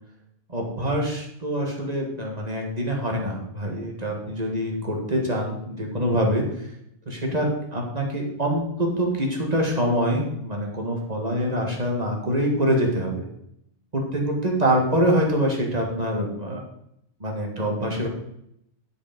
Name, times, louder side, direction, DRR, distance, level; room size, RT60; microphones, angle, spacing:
voice 1, 0.5-6.4 7.1-13.2 13.9-16.6 17.2-18.1, equal, 30° right, 0 dB, 1.9 m, -25 dB
10.5 x 5.2 x 5.2 m, 0.76 s
omnidirectional pair, 1.5 m